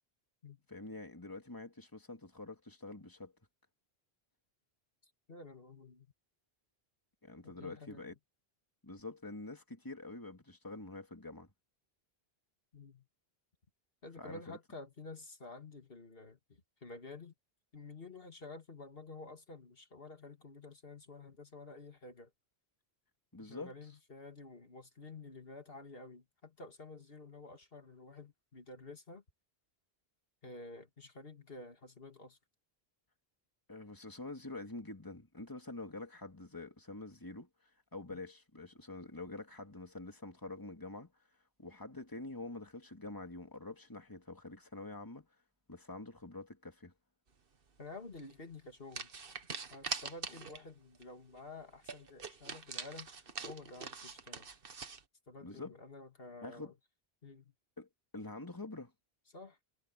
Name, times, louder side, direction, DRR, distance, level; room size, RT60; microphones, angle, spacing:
voice 1, 0.7-3.3 7.2-8.1 8.8-11.5 14.2-14.6 23.3-23.7 33.7-37.5 37.9-41.1 41.6-45.3 45.7-46.9 55.4-55.8 56.4-56.7 57.8-57.9 58.1-58.9, left 2 dB, 20° left, 2.5 m, -46 dB
voice 2, 5.3-6.1 7.4-8.1 12.7-13.1 14.0-17.3 17.7-22.3 23.4-29.2 30.4-32.4 38.1-38.2 47.8-49.1 49.7-54.5 55.3-56.7 57.2-57.5 59.3-59.6, left 3 dB, 65° left, 2.6 m, -51 dB
sound 1, 48.1-48.3 48.9-50.7 51.0-51.1 51.4-51.5 51.8-55.0, right 5 dB, 60° right, 1.5 m, -43 dB
omnidirectional pair, 1.1 m